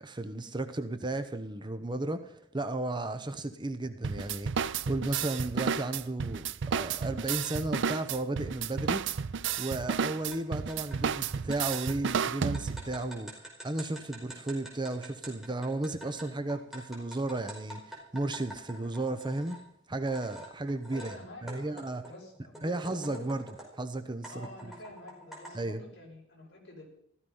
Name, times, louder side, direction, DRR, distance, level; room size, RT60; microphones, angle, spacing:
voice 1, 0.0-9.0 9.6-19.6 19.9-21.1 21.4-22.1 22.6-23.4 23.8-24.7 25.5-25.8, right 2 dB, 20° right, 9 dB, 0.9 m, -34 dB
sound 1, 4.0-13.0, right 6 dB, 60° right, 0.5 m, -32 dB
sound 2, 10.3-10.4 10.7-19.6 20.1-21.2 21.5-23.8 24.2-25.6, right 1 dB, ahead, 5.0 m, -47 dB
voice 2, 20.9-23.3 24.3-26.9, left 1 dB, 55° left, -1 dB, 5.7 m, -48 dB
15.5 x 14.5 x 5.6 m, 0.68 s
head